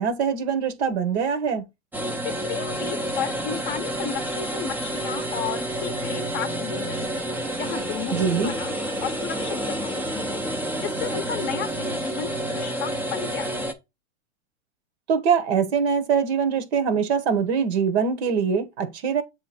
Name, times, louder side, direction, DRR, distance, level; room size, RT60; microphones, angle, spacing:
voice 1, 0.0-1.6 8.1-8.5 15.1-19.2, right 6 dB, 60° right, 1.2 m, -23 dB
sound 1, 1.9-13.7, right 1 dB, 5° right, 0.5 m, -29 dB
voice 2, 2.2-7.2 7.6-8.7 9.0-10.4 10.8-13.6, left 8 dB, 30° left, 0.7 m, -33 dB
7.6 x 3.1 x 4.1 m
hypercardioid pair, 135°, 37 cm